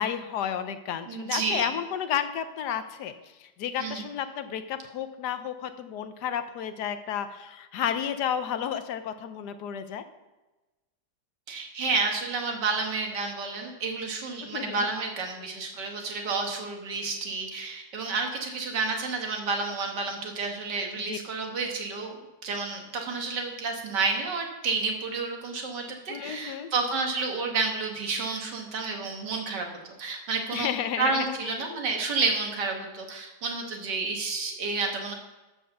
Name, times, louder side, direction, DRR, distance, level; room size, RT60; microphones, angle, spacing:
voice 1, 0.0-3.1 3.4-10.0 14.5-14.9 21.1-21.2 26.1-26.7 30.5-31.6, left 9 dB, 75° left, 10 dB, 1.3 m, -32 dB
voice 2, 1.1-1.7 3.8-4.1 11.5-22.2 22.4-29.7 30.0-30.7 31.0-35.1, right 4 dB, 85° right, 2 dB, 2.0 m, -30 dB
12.0 x 4.6 x 6.8 m, 1.1 s
omnidirectional pair, 1.8 m